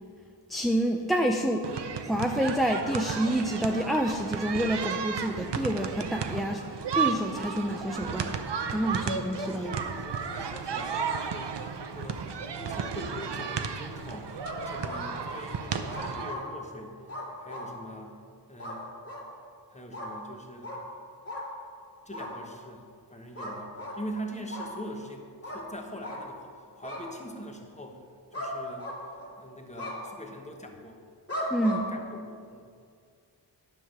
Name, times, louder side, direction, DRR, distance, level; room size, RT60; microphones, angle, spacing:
voice 1, 0.5-1.7 2.0-6.6 6.9-8.4 8.7-9.9 31.5-31.9, right 1 dB, ahead, 3 dB, 0.5 m, -28 dB
sound 1, 1.6-16.3, right 6 dB, 75° right, 0.7 m, -33 dB
voice 2, 9.5-12.3 12.5-17.0 17.4-18.2 18.5-18.9 19.7-20.7 22.0-22.8 23.1-28.0 28.3-28.9 29.4-31.0 31.9-32.7, equal, 15° left, 2 dB, 1.2 m, -43 dB
sound 2, 14.4-15.3 15.9-16.4 17.1-17.7 18.6-18.8 19.0-19.3 19.9-20.1 20.6-20.8 21.3-21.4 22.1-22.3 23.4-24.0 24.5-24.7 25.4-25.6 26.0-26.2 26.8-27.0 28.3-28.5 28.8-29.3 29.8-29.9 31.3-31.8, left 1 dB, 35° left, 2.5 m, -36 dB
10.5 x 5.7 x 6.4 m, 2.2 s
wide cardioid pair, 70°, 42 cm